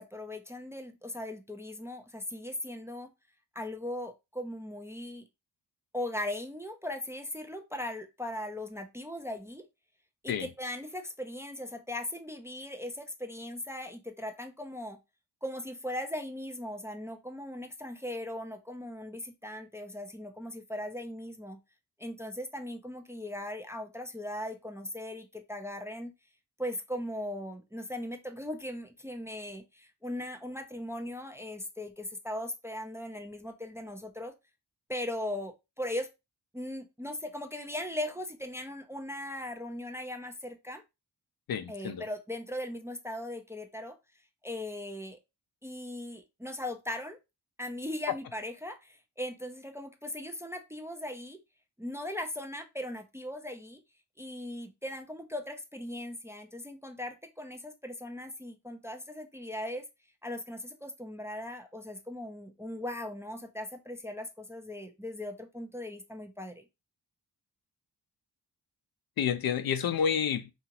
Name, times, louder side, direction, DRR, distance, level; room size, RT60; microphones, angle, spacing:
voice 1, 0.0-3.1 3.5-5.3 5.9-9.6 10.2-15.0 15.4-21.6 22.0-26.1 26.6-34.3 34.9-36.1 36.5-40.8 41.7-44.0 44.4-45.2 45.6-47.2 47.6-51.4 51.8-53.8 54.2-59.9 60.2-66.6, left 1 dB, 5° right, 0.4 m, -39 dB
voice 2, 41.5-42.0 69.2-70.5, left 7 dB, 60° left, 0.5 m, -29 dB
2.8 x 2.4 x 2.8 m
cardioid pair, 55°, 42 cm